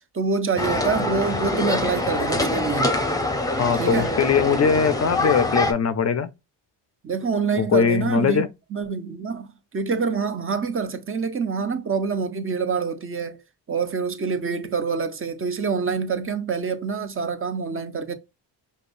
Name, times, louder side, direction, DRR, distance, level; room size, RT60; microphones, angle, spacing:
voice 1, 0.1-3.0 3.7-4.1 7.0-8.5 8.7-9.5 9.7-13.4 13.7-18.1, right 5 dB, 30° right, 0.7 m, -26 dB
sound 1, 0.6-5.7, left 2 dB, 10° left, 0.8 m, -24 dB
voice 2, 3.6-6.3 7.6-8.5, left 6 dB, 35° left, 0.5 m, -21 dB
5.1 x 2.2 x 2.5 m
cardioid pair, 85°, 45 cm